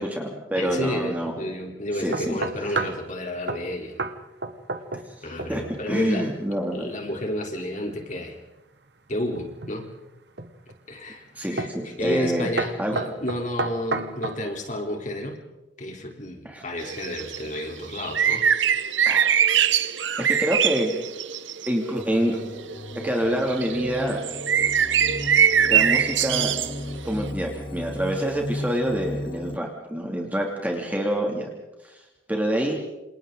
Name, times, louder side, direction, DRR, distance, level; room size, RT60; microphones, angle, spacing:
voice 1, 0.0-1.4 1.9-2.4 2.6-2.8 5.5-6.8 11.3-12.5 12.8-13.0 16.4-16.6 19.1-19.3 20.3-21.0 21.7-22.4 23.0-24.2 25.7-26.6 27.0-31.5 31.8-32.0 32.3-32.7, equal, 10° right, 0 dB, 2.7 m, -26 dB
voice 2, 0.6-4.0 5.2-6.3 6.7-8.4 9.1-9.9 10.9-15.4 15.8-18.4, left 1 dB, 40° left, 2 dB, 3.7 m, -31 dB
sound 1, 2.1-3.0 3.5-3.7 4.0-4.2 4.4-5.1 5.4-5.8 9.1-9.8 10.4-10.8 11.6-11.8 12.1-12.3 12.6-14.4, right 3 dB, 60° right, 1.4 m, -30 dB
sound 2, 16.8-22.3 22.6-27.3, right 8 dB, 90° right, 1.1 m, -23 dB
sound 3, 22.0-29.6, left 1 dB, 25° left, 0.9 m, -35 dB
28.0 x 27.5 x 3.9 m, 0.99 s
head